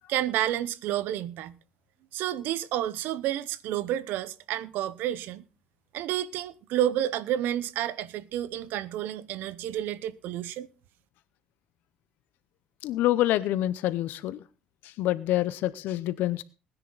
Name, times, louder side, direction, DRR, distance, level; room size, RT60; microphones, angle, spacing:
voice 1, 0.1-1.6 2.1-5.4 5.9-10.7, right 12 dB, 75° right, 0.9 m, -30 dB
voice 2, 12.8-14.4 14.8-16.4, left 14 dB, 75° left, 0.7 m, -27 dB
19.5 x 10.0 x 4.0 m
cardioid pair, 150°, 3 cm